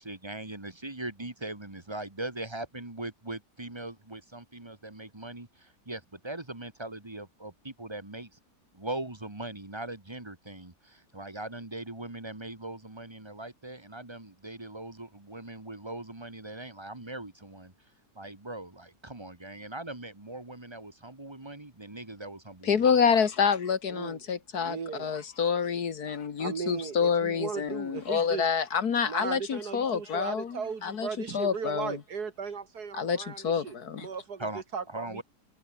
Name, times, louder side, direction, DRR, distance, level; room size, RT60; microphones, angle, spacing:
voice 1, 0.0-8.3 8.7-17.7 18.2-22.9 34.4-34.6 34.9-35.2, right 2 dB, 15° right, 1.9 m, -40 dB
voice 2, 22.6-31.1 31.3-32.0 32.9-34.1, left 6 dB, 65° left, 2.0 m, -27 dB
voice 3, 23.9-24.2 24.6-25.1 26.4-28.5 29.0-35.2, right 6 dB, 65° right, 2.4 m, -37 dB
omnidirectional pair, 1.8 m